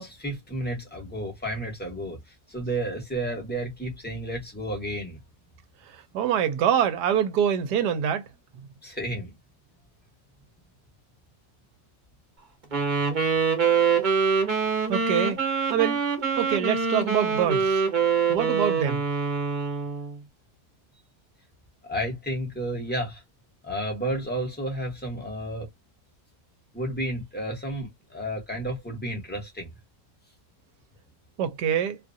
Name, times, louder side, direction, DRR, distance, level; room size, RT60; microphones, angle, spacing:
voice 1, 0.0-2.2 2.5-5.2 8.8-9.3 21.9-23.2 23.6-25.7 26.7-29.7, right 1 dB, 10° left, 0.6 m, -31 dB
voice 2, 6.1-8.2 14.9-15.4 15.7-16.0 16.4-17.8 18.3-19.0 31.4-32.0, right 9 dB, 70° right, 1.0 m, -25 dB
Wind instrument woodwind instrument, 12.7-20.1, right 6 dB, 40° right, 0.7 m, -24 dB
2.8 x 2.4 x 2.5 m
omnidirectional pair, 2.0 m